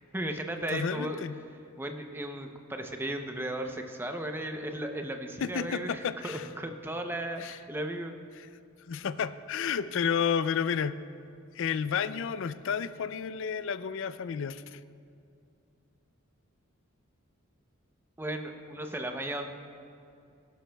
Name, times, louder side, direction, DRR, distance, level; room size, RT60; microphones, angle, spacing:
voice 1, 0.1-1.2 1.8-8.2 18.2-19.5, right 1 dB, 10° right, 5 dB, 0.6 m, -35 dB
voice 2, 0.7-1.4 5.4-6.5 7.4-7.6 8.9-11.0 11.5-14.8, left 7 dB, 60° left, 14 dB, 0.4 m, -31 dB
16.5 x 11.5 x 2.3 m, 2.5 s
head